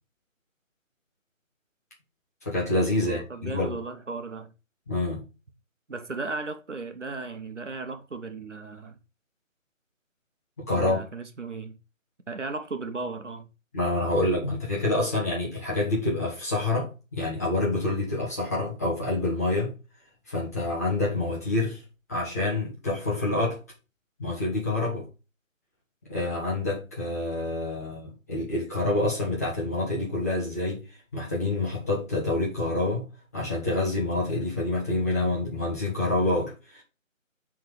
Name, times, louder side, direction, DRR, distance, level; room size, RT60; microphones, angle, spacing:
voice 1, 2.4-3.7 4.9-5.2 10.6-11.0 13.7-19.7 20.3-21.8 22.1-23.6 24.2-25.1 26.1-30.8 31.1-33.0 33.3-36.8, left 2 dB, 10° left, 1.3 m, -27 dB
voice 2, 3.0-4.5 5.9-9.0 10.7-11.8 12.3-13.5, right 3 dB, 60° right, 1.4 m, -36 dB
6.5 x 3.9 x 5.0 m
figure-of-eight pair, 160°, 40 cm